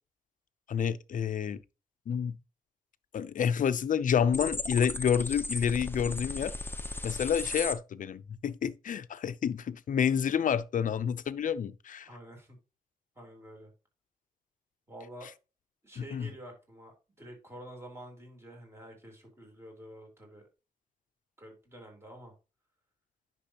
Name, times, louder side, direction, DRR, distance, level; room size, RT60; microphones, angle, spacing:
voice 1, 0.7-1.6 2.1-2.4 3.1-6.5 7.0-12.1 16.0-16.3, left 8 dB, 60° left, 0.6 m, -29 dB
sound 1, 4.3-7.7, left 2 dB, 15° left, 0.8 m, -36 dB
voice 2, 12.0-12.6 13.2-13.7 14.9-15.3 15.8-20.4 21.4-22.3, right 1 dB, 15° right, 3.7 m, -48 dB
10.0 x 6.1 x 2.9 m
wide cardioid pair, 120°, 15 cm